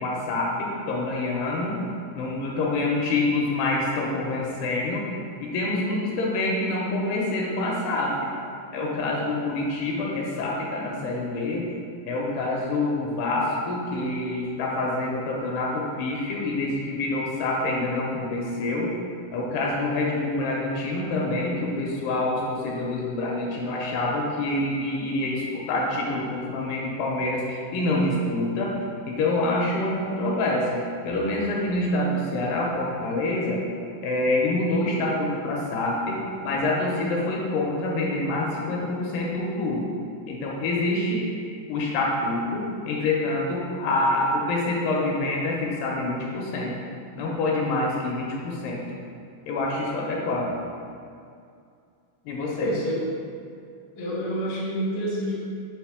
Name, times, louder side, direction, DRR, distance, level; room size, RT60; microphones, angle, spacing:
voice 1, 0.0-1.8 2.2-5.0 5.4-8.3 8.7-11.7 12.1-18.9 19.3-28.7 29.1-33.6 34.0-39.9 40.3-41.3 41.7-46.7 47.1-48.8 49.5-50.5 52.3-52.7, left 2 dB, 80° left, -2 dB, 2.6 m, -26 dB
voice 2, 52.6-53.1 53.9-55.4, equal, 60° left, -7 dB, 1.4 m, -28 dB
6.4 x 3.7 x 4.8 m, 2.4 s
omnidirectional pair, 4.9 m